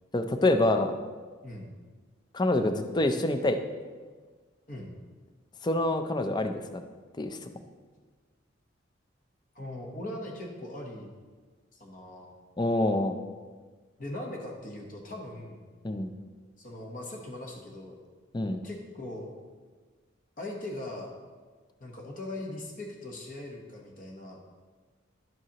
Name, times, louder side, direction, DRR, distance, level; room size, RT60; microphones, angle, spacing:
voice 1, 0.1-0.9 2.3-3.6 5.6-6.5 7.2-7.4 12.6-13.2 15.8-16.1 18.3-18.6, left 1 dB, 20° left, 8 dB, 0.4 m, -26 dB
voice 2, 9.5-11.1 11.7-12.3 14.0-15.6 16.6-18.0 18.6-19.3 20.4-21.1 21.8-24.4, left 1 dB, 40° left, 0 dB, 1.0 m, -40 dB
10.5 x 7.8 x 2.9 m, 1.5 s
head